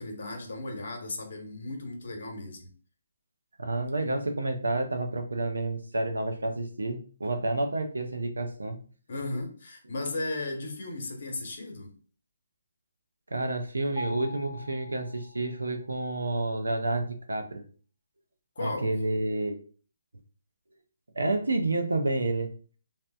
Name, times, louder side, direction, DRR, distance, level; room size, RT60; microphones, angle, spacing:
voice 1, 0.0-2.7 9.1-11.9 18.6-18.9, left 2 dB, 55° left, 0.9 m, -35 dB
voice 2, 3.6-8.8 13.3-17.6 18.6-19.6 21.2-22.5, right 2 dB, 80° right, 0.5 m, -29 dB
Mallet percussion, 14.0-15.9, left 1 dB, ahead, 0.7 m, -42 dB
2.9 x 2.1 x 2.3 m
figure-of-eight pair, 145°, 0 cm